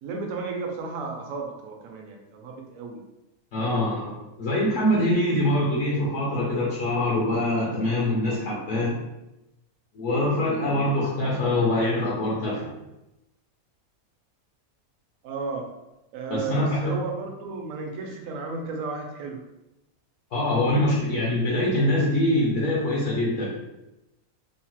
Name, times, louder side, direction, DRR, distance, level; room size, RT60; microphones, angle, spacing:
voice 1, 0.0-3.0 15.2-15.7 16.1-19.4, right 3 dB, 75° right, 2 dB, 0.9 m, -33 dB
voice 2, 3.5-9.0 9.9-12.7 16.3-16.9 20.3-23.5, left 1 dB, 65° left, -5 dB, 0.9 m, -24 dB
3.0 x 2.0 x 2.9 m, 0.93 s
omnidirectional pair, 1.5 m